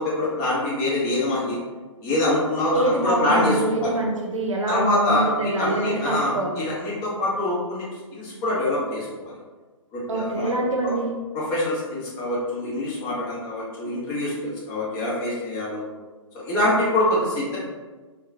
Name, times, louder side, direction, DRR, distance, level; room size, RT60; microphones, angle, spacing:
voice 1, 0.0-1.6 2.0-3.9 4.7-7.8 8.1-9.3 9.9-10.5 10.8-10.9 11.3-15.8 16.3-17.6, left 1 dB, 20° left, -7 dB, 1.0 m, -25 dB
voice 2, 2.7-6.6 10.1-11.2, right 2 dB, 70° right, 0 dB, 0.7 m, -25 dB
3.6 x 2.2 x 2.7 m, 1.3 s
figure-of-eight pair, 125°, 17 cm